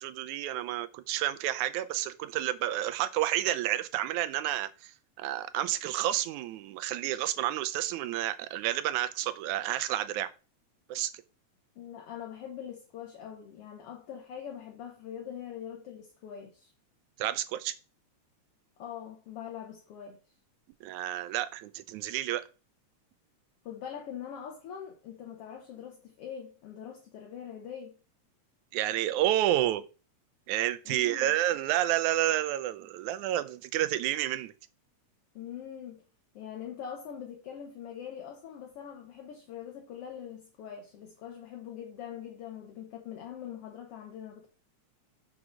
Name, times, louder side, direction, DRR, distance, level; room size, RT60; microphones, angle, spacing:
voice 1, 0.0-10.3 10.9-11.1 17.2-17.7 20.8-22.4 28.7-29.8 30.5-34.5, right 13 dB, 90° right, 2.1 m, -30 dB
voice 2, 11.8-16.7 18.8-20.2 23.7-28.0 30.9-31.3 35.4-36.0 36.3-44.5, left 9 dB, 60° left, 1.9 m, -43 dB
6.3 x 4.9 x 6.2 m
omnidirectional pair, 3.3 m